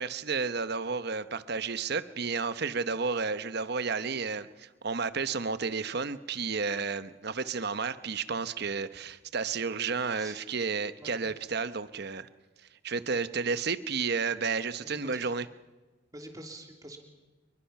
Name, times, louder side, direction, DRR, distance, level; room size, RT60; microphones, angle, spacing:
voice 1, 0.0-12.3 12.8-15.5, right 5 dB, 55° right, 13 dB, 0.9 m, -32 dB
voice 2, 14.8-15.3 16.1-17.0, right 1 dB, 20° right, 3 dB, 3.0 m, -46 dB
27.5 x 22.0 x 5.9 m, 1.2 s
head